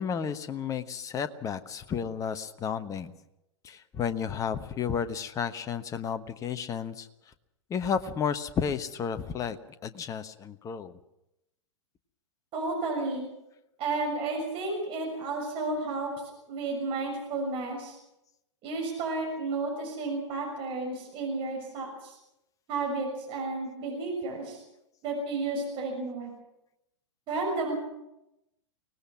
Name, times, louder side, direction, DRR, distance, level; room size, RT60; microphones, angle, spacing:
voice 1, 0.0-3.1 3.6-7.1 7.7-9.6 9.8-11.0, left 7 dB, 20° left, 11 dB, 1.1 m, -32 dB
voice 2, 12.5-13.3 13.8-18.0 18.6-22.1 22.7-24.6 25.0-26.3 27.3-27.7, right 3 dB, 35° right, 1 dB, 6.6 m, -32 dB
24.0 x 19.0 x 6.0 m, 0.89 s
figure-of-eight pair, 100°, 16 cm